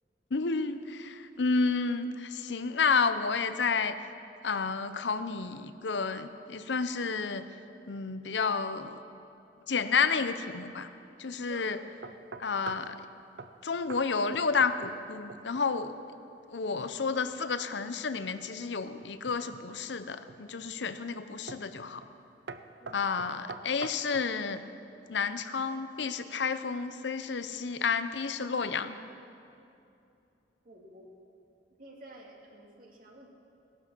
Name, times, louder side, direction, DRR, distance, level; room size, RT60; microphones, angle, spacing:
voice 1, 0.3-4.0 4.4-7.5 7.9-9.0 9.7-10.9 11.2-11.8 12.4-12.9 13.6-15.9 16.5-22.0 22.9-24.6 25.1-29.0, left 5 dB, 80° left, 11 dB, 0.7 m, -30 dB
sound 1, 12.0-12.9 13.4-13.6 13.9-14.1 14.3-15.0 15.3-15.7 19.0-19.7 20.3-20.7 21.5-21.7 22.0-22.2 22.5-24.3, right 4 dB, 75° right, 0.6 m, -44 dB
voice 2, 30.6-31.1 31.8-33.3, right 1 dB, 50° right, 0 dB, 2.3 m, -50 dB
17.5 x 11.5 x 6.2 m, 2.7 s
head